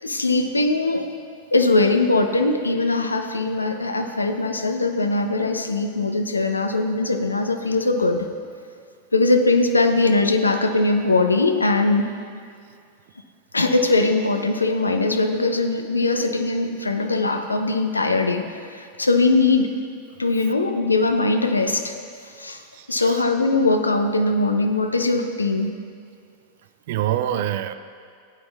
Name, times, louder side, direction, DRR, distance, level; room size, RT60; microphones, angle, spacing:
voice 1, 0.0-1.1 1.5-8.3 9.1-12.1 13.5-19.7 20.2-21.9 22.4-22.6 22.9-25.7, left 3 dB, 80° left, 6 dB, 0.7 m, -21 dB
voice 2, 22.7-23.2 26.9-27.7, right 12 dB, 50° right, 12 dB, 0.4 m, -25 dB
16.0 x 9.5 x 2.4 m, 2.2 s
figure-of-eight pair, 90°, 0 cm